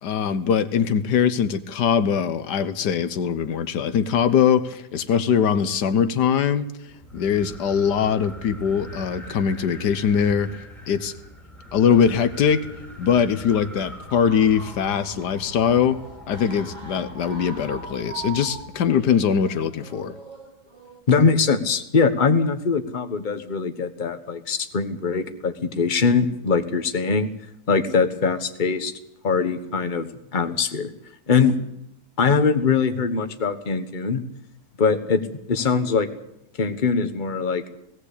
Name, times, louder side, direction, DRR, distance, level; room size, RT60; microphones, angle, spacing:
voice 1, 0.0-6.7 7.1-10.5 10.9-11.1 11.7-12.6 13.0-16.0 16.3-20.1, left 7 dB, 90° left, 12 dB, 1.6 m, -21 dB
sound 1, 6.9-19.0, right 1 dB, ahead, 3.1 m, -41 dB
sound 2, 14.2-21.0, right 1 dB, 25° right, 2.9 m, -45 dB
voice 2, 21.1-27.3 27.7-28.9 29.2-30.9 31.3-31.6 32.2-34.2 34.8-36.1 36.6-37.7, left 5 dB, 30° left, 8 dB, 1.4 m, -22 dB
18.0 x 17.5 x 8.4 m, 0.78 s
omnidirectional pair, 1.7 m